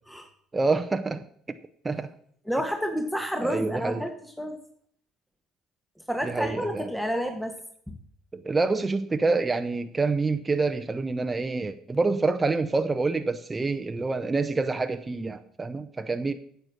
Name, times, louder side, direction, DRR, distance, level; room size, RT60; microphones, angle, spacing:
voice 1, 0.5-1.3 1.8-2.1 3.4-4.1 6.2-6.9 8.3-16.3, right 3 dB, 20° right, 7 dB, 0.8 m, -27 dB
voice 2, 2.5-4.1 4.4-4.6 6.1-7.5 7.9-8.0, equal, ahead, 5 dB, 1.4 m, -29 dB
8.9 x 8.0 x 6.2 m, 0.63 s
hypercardioid pair, 65°, 0 cm